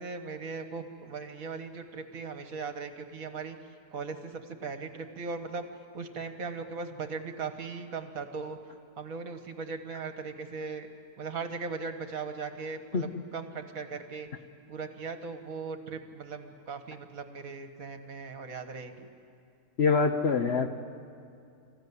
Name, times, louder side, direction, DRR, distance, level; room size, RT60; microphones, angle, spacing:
voice 1, 0.0-3.6 3.9-5.7 5.9-8.6 9.0-10.9 11.2-14.3 14.7-19.1, right 4 dB, 60° right, 7 dB, 1.7 m, -38 dB
voice 2, 19.8-20.7, left 4 dB, 50° left, 7 dB, 1.0 m, -24 dB
26.5 x 15.0 x 9.5 m, 2.5 s
omnidirectional pair, 1.7 m